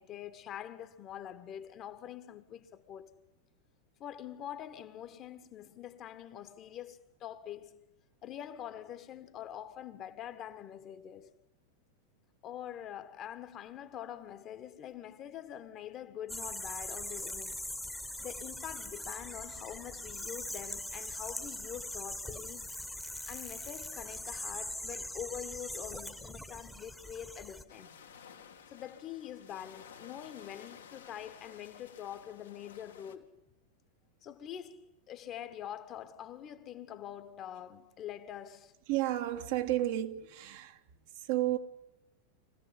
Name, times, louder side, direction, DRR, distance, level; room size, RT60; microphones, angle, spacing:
voice 1, 0.0-3.1 4.0-7.8 8.2-11.3 12.4-17.6 18.2-22.7 23.3-27.9 28.7-33.4 34.2-38.7, left 10 dB, 35° left, 1.5 m, -45 dB
sound 1, 16.3-27.6, left 1 dB, 5° left, 1.4 m, -41 dB
sound 2, 27.7-33.2, left 7 dB, 70° left, 2.0 m, -54 dB
voice 2, 38.9-40.8 41.1-41.6, right 14 dB, 50° right, 1.3 m, -32 dB
24.0 x 16.0 x 9.7 m
figure-of-eight pair, 90°, 0 cm